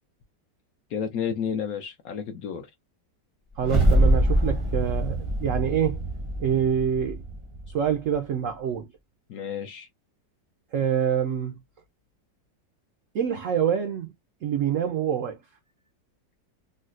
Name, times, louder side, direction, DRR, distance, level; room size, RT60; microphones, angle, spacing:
voice 1, 0.9-2.7 9.3-9.9, left 7 dB, 70° left, 0.9 m, -31 dB
sound 1, 3.5-7.9, right 1 dB, 40° right, 0.4 m, -24 dB
voice 2, 3.6-6.0 6.4-7.2 7.7-8.9 10.7-11.6 13.1-14.1 14.4-15.4, right 8 dB, 80° right, 0.7 m, -26 dB
3.9 x 2.1 x 2.4 m
omnidirectional pair, 1.9 m